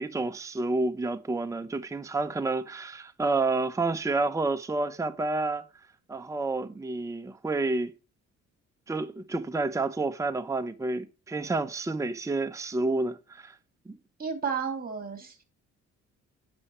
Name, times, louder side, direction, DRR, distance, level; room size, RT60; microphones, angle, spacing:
voice 1, 0.0-5.6 6.1-7.9 8.9-13.5 13.9-14.0, right 3 dB, 10° right, 0.7 m, -29 dB
voice 2, 14.2-15.4, right 6 dB, 30° right, 2.6 m, -32 dB
9.6 x 6.0 x 4.4 m
cardioid pair, 90°, 30 cm